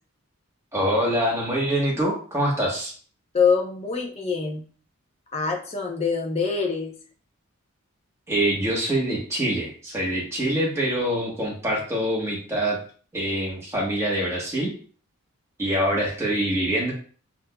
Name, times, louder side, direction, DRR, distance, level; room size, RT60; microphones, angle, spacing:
voice 1, 0.7-2.9 8.3-12.8 13.1-14.7 15.6-16.9, right 1 dB, 10° right, -4 dB, 1.2 m, -25 dB
voice 2, 3.3-4.6 5.3-6.9, left 5 dB, 30° left, 1 dB, 0.7 m, -24 dB
5.9 x 2.6 x 2.2 m, 0.42 s
head